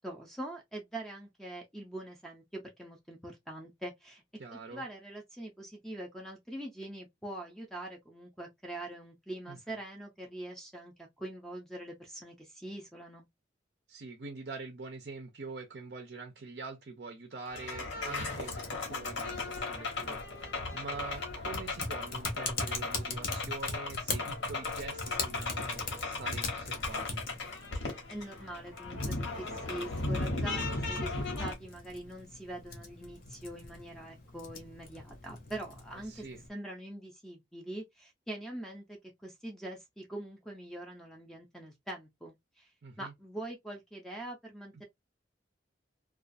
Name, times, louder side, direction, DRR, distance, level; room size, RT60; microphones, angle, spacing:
voice 1, 0.0-4.2 4.5-13.3 28.1-42.7 43.0-44.8, right 1 dB, ahead, 0.5 m, -43 dB
voice 2, 4.4-4.8 9.5-9.8 13.9-27.2 36.1-36.4 42.8-43.1, right 4 dB, 55° right, 0.5 m, -45 dB
sound 1, 17.5-31.5, left 3 dB, 80° left, 1.1 m, -36 dB
Typing, 18.5-36.5, left 3 dB, 50° left, 0.7 m, -42 dB
2.3 x 2.3 x 2.5 m
head